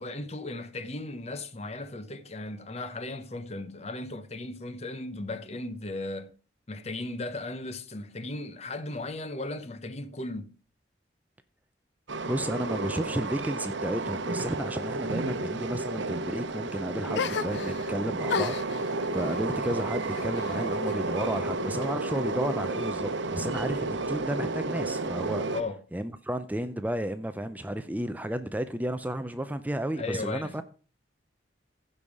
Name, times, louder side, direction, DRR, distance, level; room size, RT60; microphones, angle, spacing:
voice 1, 0.0-6.3 6.7-10.5 25.5-25.8 30.0-30.6, left 2 dB, 35° left, 0.8 m, -36 dB
Train, 12.1-25.6, right 3 dB, 80° right, 0.9 m, -32 dB
voice 2, 12.3-25.5 25.9-30.6, right 1 dB, 10° right, 0.4 m, -32 dB
sound 1, 17.1-17.9 18.3-21.0 21.3-22.2, left 6 dB, 65° left, 0.4 m, -35 dB
15.0 x 5.5 x 4.8 m
head